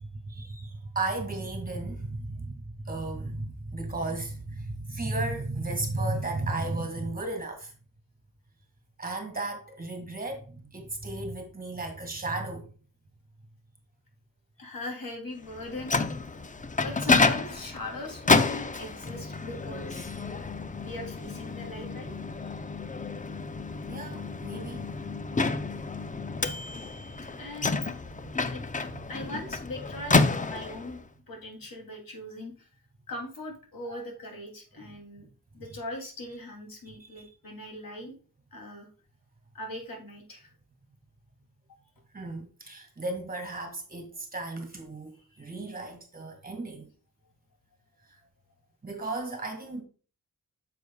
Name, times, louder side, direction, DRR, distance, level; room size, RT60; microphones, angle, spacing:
voice 1, 0.3-7.7 9.0-12.7 23.9-25.0 25.7-26.1 28.2-29.1 33.9-34.0 37.2-37.3 42.1-46.9 48.8-49.8, right 2 dB, 25° right, 2.0 m, -35 dB
voice 2, 14.6-16.1 16.8-20.1 20.8-22.5 27.4-28.0 28.4-32.7 33.1-35.3 35.5-38.2 38.5-38.9 39.5-40.5 45.2-45.5, left 1 dB, 65° left, 2.8 m, -40 dB
Microwave oven, 15.5-31.0, left 3 dB, 20° left, 0.5 m, -29 dB
9.3 x 6.9 x 2.3 m
wide cardioid pair, 165°, 36 cm